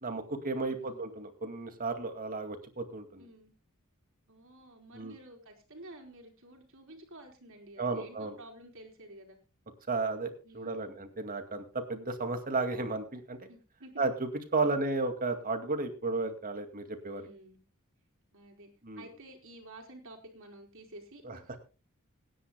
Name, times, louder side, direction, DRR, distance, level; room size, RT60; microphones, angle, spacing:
voice 1, 0.0-3.2 4.9-5.1 7.8-8.4 9.9-13.5 14.0-17.2 18.8-19.1 21.2-21.4, right 3 dB, 40° right, 7 dB, 2.2 m, -33 dB
voice 2, 0.7-1.0 3.2-3.5 4.3-9.4 10.4-11.1 13.5-14.0 17.1-17.6 18.3-18.7 19.0-21.6, right 1 dB, 65° right, 4 dB, 3.8 m, -52 dB
26.0 x 10.0 x 2.2 m, 0.31 s
head